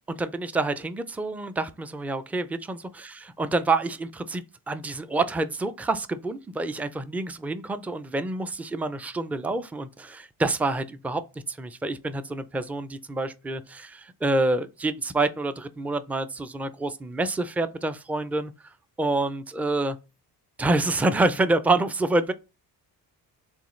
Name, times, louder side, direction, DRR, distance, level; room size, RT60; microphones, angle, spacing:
voice 1, 0.1-11.2 11.5-18.5 19.0-20.0 20.6-22.3, right 2 dB, 5° right, 0.3 m, -27 dB
6.9 x 2.4 x 3.1 m
cardioid pair, 85°, 42 cm